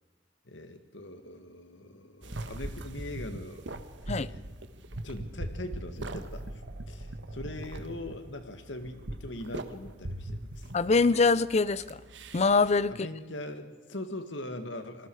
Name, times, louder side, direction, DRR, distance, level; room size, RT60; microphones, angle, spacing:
voice 1, 0.5-3.7 4.1-4.4 5.0-6.6 6.9-10.7 12.9-15.1, left 1 dB, 80° left, 2.1 m, -41 dB
sound 1, 2.2-12.8, right 1 dB, 75° right, 1.4 m, -41 dB
voice 2, 10.7-12.0 12.3-13.0, left 4 dB, 35° left, 0.5 m, -24 dB
27.5 x 20.0 x 4.9 m
head